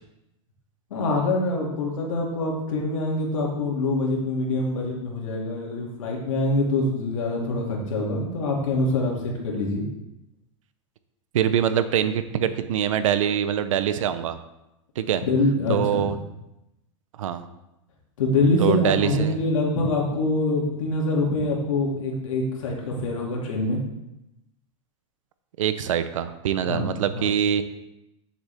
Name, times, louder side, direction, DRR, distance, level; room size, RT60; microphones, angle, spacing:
voice 1, 0.9-9.9 15.2-16.1 18.2-23.8 26.6-27.3, left 2 dB, 90° left, -2 dB, 2.6 m, -25 dB
voice 2, 11.3-14.4 15.0-15.2 15.7-16.2 17.2-17.4 18.6-19.4 25.6-27.6, right 9 dB, 90° right, 11 dB, 0.7 m, -24 dB
9.8 x 7.0 x 3.5 m, 0.90 s
supercardioid pair, 145°, 16 cm